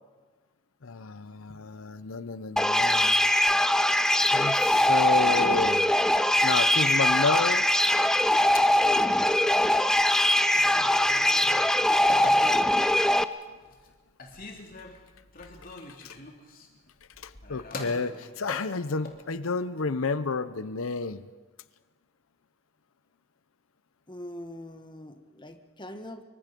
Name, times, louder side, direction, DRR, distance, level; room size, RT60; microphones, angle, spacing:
voice 1, 0.8-3.1 4.3-5.9 6.4-7.6 8.5-8.6 16.0-16.2 17.2-21.3, left 4 dB, 90° left, 14 dB, 0.8 m, -30 dB
sound 1, 2.6-13.2, left 1 dB, 5° left, 0.6 m, -22 dB
Telephone, 10.5-12.9 13.4-13.9 14.2-19.2, left 2 dB, 45° left, 3.0 m, -42 dB
voice 2, 24.1-26.2, left 1 dB, 25° left, 6 dB, 1.5 m, -42 dB
25.5 x 23.5 x 5.3 m, 1.4 s
head